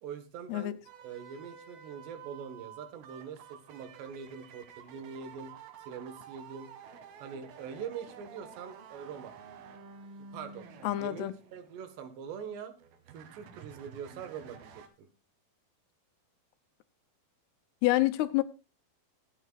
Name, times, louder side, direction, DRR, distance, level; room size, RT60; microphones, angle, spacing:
voice 1, 0.0-5.5 5.9-6.7 7.2-9.3 10.3-10.7 11.0-12.7 13.1-15.1, right 7 dB, 85° right, 3.7 m, -43 dB
sound 1, 0.9-12.2 12.8-14.9, right 6 dB, 70° right, 3.2 m, -51 dB
voice 2, 10.8-11.3 17.8-18.4, left 16 dB, 80° left, 2.6 m, -27 dB
23.5 x 9.1 x 2.5 m
omnidirectional pair, 4.8 m